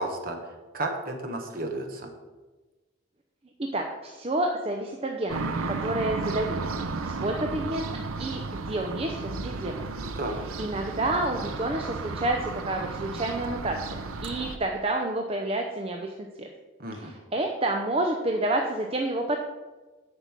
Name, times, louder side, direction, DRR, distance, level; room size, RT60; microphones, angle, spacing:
voice 1, 0.0-2.1 10.2-10.4 16.8-17.1, right 2 dB, 45° right, 3 dB, 1.4 m, -33 dB
voice 2, 3.6-6.6 7.0-9.9 10.6-16.5 17.0-19.4, right 1 dB, 30° right, 2 dB, 0.6 m, -29 dB
sound 1, 5.3-14.6, right 3 dB, 90° right, 0.7 m, -34 dB
8.3 x 5.5 x 7.3 m, 1.2 s
head